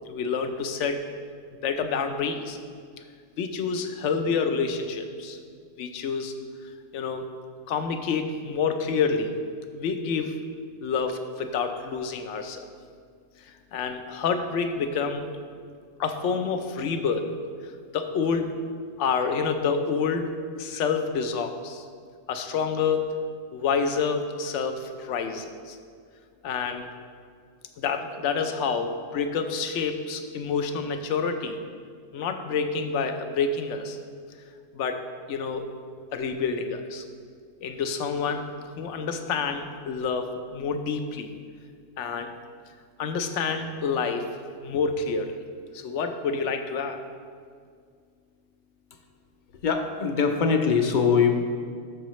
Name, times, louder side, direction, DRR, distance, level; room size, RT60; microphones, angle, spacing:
voice 1, 0.1-1.0 1.6-2.6 3.4-5.4 5.8-6.3 6.9-7.3 7.7-9.3 9.7-10.3 10.8-12.7 13.7-15.3 16.0-17.3 17.9-18.5 19.0-20.3 20.6-21.8 22.3-23.1 23.5-25.8 26.4-26.9 27.8-31.6 32.1-34.0 34.7-35.0 35.3-35.7 36.1-37.0 37.6-38.5 38.8-41.3 42.0-42.3 43.0-44.3 44.6-45.3 45.7-47.0, left 5 dB, 70° left, 7 dB, 1.0 m, -28 dB
voice 2, 49.6-51.5, left 6 dB, 45° left, 5 dB, 0.7 m, -22 dB
12.5 x 6.5 x 3.1 m, 2.1 s
omnidirectional pair, 1.3 m